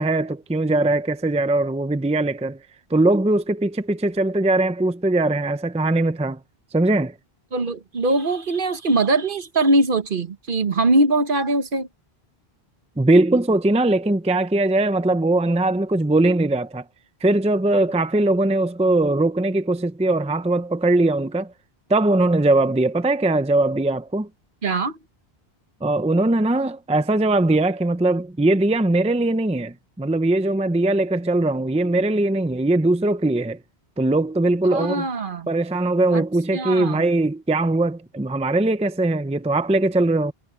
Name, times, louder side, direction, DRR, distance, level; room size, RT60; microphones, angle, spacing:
voice 1, 0.0-2.6 2.9-6.4 6.7-7.1 13.0-16.8 17.2-21.5 21.9-24.3 25.8-33.6 34.0-35.1 35.5-40.3, right 2 dB, 10° right, 0.6 m, -20 dB
voice 2, 7.5-11.9 24.6-25.0 34.6-35.5 36.1-36.2 36.5-37.0, right 2 dB, 55° right, 1.3 m, -21 dB
omnidirectional pair, 1.0 m